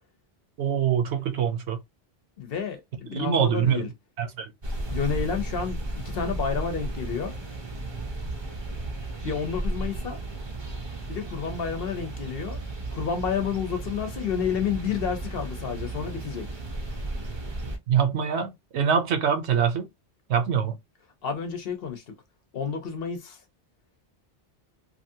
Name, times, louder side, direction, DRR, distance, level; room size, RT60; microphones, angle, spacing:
voice 1, 0.6-1.8 3.1-3.9 4.2-4.5 17.9-19.9 20.3-20.8, right 7 dB, 75° right, 0.9 m, -24 dB
voice 2, 2.4-3.9 4.9-5.8 6.1-7.4 9.2-10.2 11.1-12.6 12.9-16.5 21.2-22.0 22.5-23.4, left 6 dB, 60° left, 0.9 m, -30 dB
sound 1, 4.6-17.8, right 2 dB, 35° right, 0.4 m, -34 dB
2.9 x 2.6 x 2.6 m
omnidirectional pair, 1.2 m